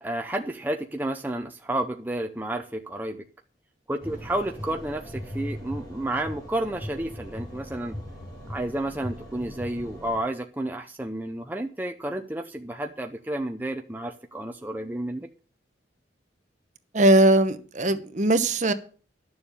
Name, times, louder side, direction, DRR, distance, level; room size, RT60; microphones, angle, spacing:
voice 1, 0.0-3.2 3.9-8.0 8.5-15.3, right 1 dB, 10° right, 0.6 m, -31 dB
sound 1, 4.0-10.2, equal, 20° left, 4.9 m, -39 dB
voice 2, 16.9-18.7, right 1 dB, 40° right, 1.0 m, -20 dB
11.0 x 7.0 x 6.8 m
head